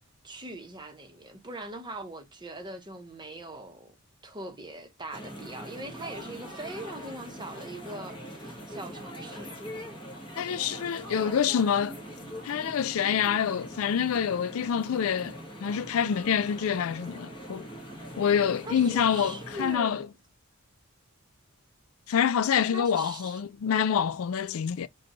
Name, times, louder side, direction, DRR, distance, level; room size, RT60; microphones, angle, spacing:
voice 1, 0.2-4.0 4.2-9.6 11.1-11.3 18.6-20.0 22.7-23.4, right 2 dB, 20° right, 0.8 m, -41 dB
sound 1, 5.1-19.8, equal, 25° left, 1.2 m, -42 dB
voice 2, 10.4-12.0 12.4-17.7 18.2-20.1 22.1-24.9, left 8 dB, 70° left, 0.4 m, -26 dB
5.0 x 2.3 x 2.9 m
head